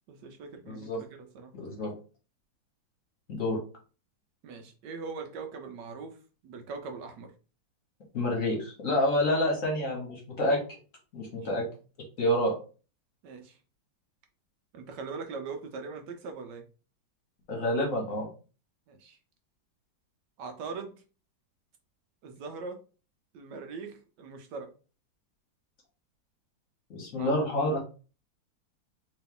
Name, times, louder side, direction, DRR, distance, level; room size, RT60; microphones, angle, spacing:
voice 1, 0.1-0.8 1.2-1.5 4.4-7.3 13.2-13.6 14.7-16.6 18.9-19.2 20.4-21.0 22.2-22.8 23.3-24.7 27.2-27.3, right 4 dB, 75° right, 5 dB, 1.1 m, -41 dB
voice 2, 0.7-1.0 1.5-1.9 3.3-3.6 8.1-10.6 11.1-11.7 12.2-12.5 17.5-18.3 26.9-27.8, left 1 dB, 50° left, -1 dB, 1.2 m, -28 dB
3.0 x 3.0 x 3.6 m, 0.35 s
omnidirectional pair, 2.1 m